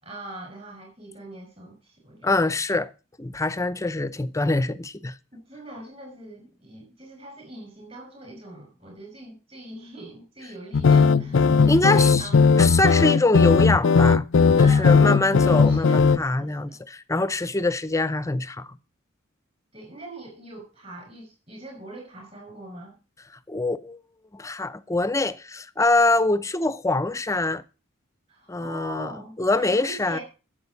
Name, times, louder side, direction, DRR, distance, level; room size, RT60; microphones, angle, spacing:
voice 1, 0.0-2.4 5.3-12.5 14.6-15.4 15.7-16.8 19.7-22.9 28.3-30.2, right 2 dB, 30° right, 5.5 m, -42 dB
voice 2, 2.2-2.9 3.2-5.2 11.7-12.3 12.6-14.2 14.6-18.8 23.5-24.0 24.3-27.6 28.5-29.1 29.4-30.2, left 2 dB, 15° left, 0.5 m, -24 dB
sound 1, 10.7-16.2, left 5 dB, 65° left, 0.5 m, -17 dB
10.5 x 7.7 x 6.9 m
head